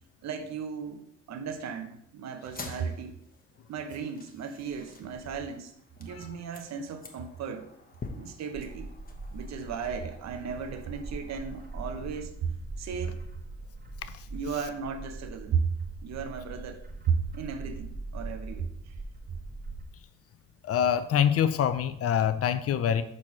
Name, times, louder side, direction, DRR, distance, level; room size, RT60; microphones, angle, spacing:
voice 1, 0.2-3.2 3.7-5.7 6.0-7.7 8.2-8.9 9.3-12.5 12.8-13.2 14.3-15.8 16.0-18.9, right 6 dB, 65° right, 6 dB, 0.8 m, -35 dB
sound 1, 2.4-12.0, left 3 dB, 30° left, 1.1 m, -48 dB
Bird, 8.5-19.8, right 2 dB, 30° right, 1.2 m, -42 dB
voice 2, 20.6-23.0, left 9 dB, 50° left, 12 dB, 0.6 m, -25 dB
4.8 x 4.2 x 5.9 m, 0.76 s
cardioid pair, 90°, 30 cm